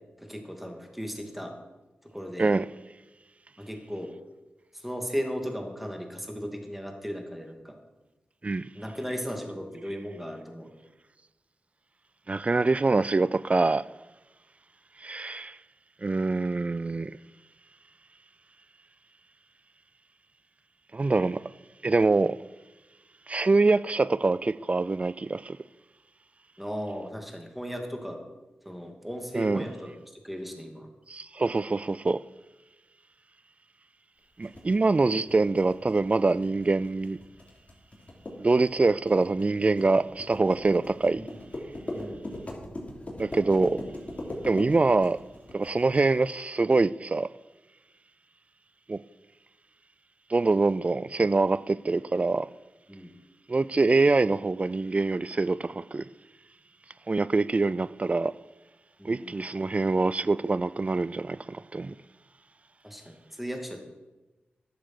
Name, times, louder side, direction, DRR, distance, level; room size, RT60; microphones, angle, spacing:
voice 1, 0.2-1.5 2.0-2.5 3.6-4.1 4.7-7.8 8.7-10.7 26.6-28.2 28.7-29.9 30.2-30.9 41.1-41.3 41.9-42.2 52.9-53.1 59.0-59.3 62.8-63.8, equal, 5° right, 2.3 m, -36 dB
voice 2, 12.3-13.9 15.0-15.6 16.0-17.2 20.9-21.4 21.8-22.4 23.3-25.6 29.3-29.6 31.1-32.2 34.4-37.2 38.4-41.3 43.2-43.8 44.4-45.2 45.5-47.3 48.9-49.0 50.3-52.5 53.5-56.1 57.1-58.3 59.0-62.0, right 3 dB, 35° right, 0.4 m, -24 dB
sound 1, 34.4-46.0, left 1 dB, 35° left, 3.2 m, -39 dB
11.5 x 6.9 x 6.1 m
cardioid pair, 40°, 4 cm